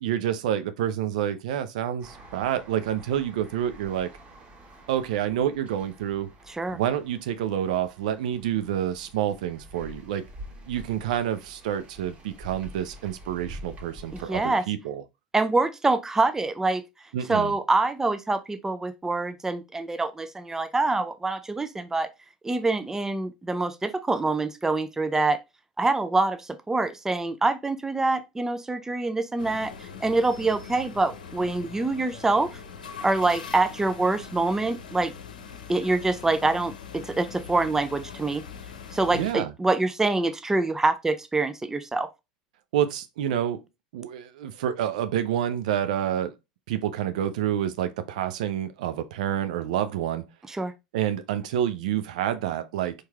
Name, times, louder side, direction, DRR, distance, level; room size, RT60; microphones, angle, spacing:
voice 1, 0.0-4.1 4.9-6.3 6.7-10.2 10.7-15.0 17.1-17.5 39.1-39.5 42.7-43.6 43.9-46.3 46.7-50.2 50.9-52.9, right 10 dB, 65° right, 0.6 m, -28 dB
sound 1, 2.0-14.5, right 1 dB, 30° right, 1.9 m, -47 dB
voice 2, 14.1-14.6 15.3-16.8 17.3-22.1 22.4-25.4 25.8-32.6 33.0-35.1 35.7-38.4 38.9-42.1 50.5-50.7, right 3 dB, 10° right, 0.5 m, -25 dB
sound 2, 29.4-39.3, left 6 dB, 80° left, 0.7 m, -42 dB
4.5 x 3.2 x 3.5 m
figure-of-eight pair, 80°, 4 cm